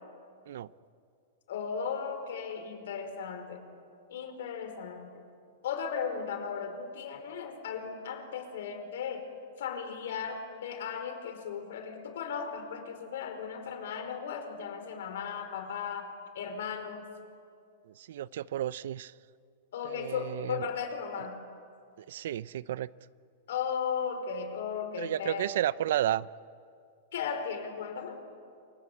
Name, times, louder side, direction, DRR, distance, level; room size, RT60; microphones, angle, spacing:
voice 1, 1.5-3.6 4.1-5.2 5.6-9.3 9.6-17.1 19.7-21.4 23.5-25.5 27.1-28.2, left 6 dB, 70° left, 4.9 m, -36 dB
voice 2, 17.9-19.1 19.8-20.6 22.0-22.9 25.0-26.3, right 12 dB, 70° right, 0.6 m, -32 dB
28.0 x 25.0 x 8.6 m
supercardioid pair, 160°, 0 cm